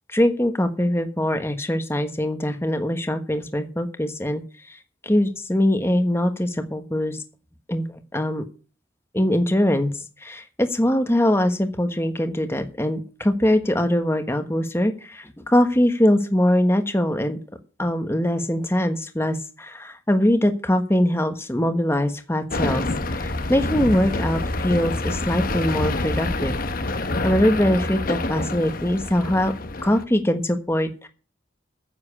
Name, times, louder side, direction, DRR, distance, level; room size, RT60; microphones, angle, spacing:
voice 1, 0.1-4.4 5.0-7.2 7.7-8.4 9.1-9.9 10.2-17.4 17.8-22.8 23.1-26.5 26.9-29.5 29.8-31.1, left 1 dB, 15° left, 7 dB, 1.2 m, -22 dB
sound 1, 22.5-30.0, left 2 dB, 45° left, 1.0 m, -27 dB
9.8 x 7.5 x 8.8 m, 0.36 s
head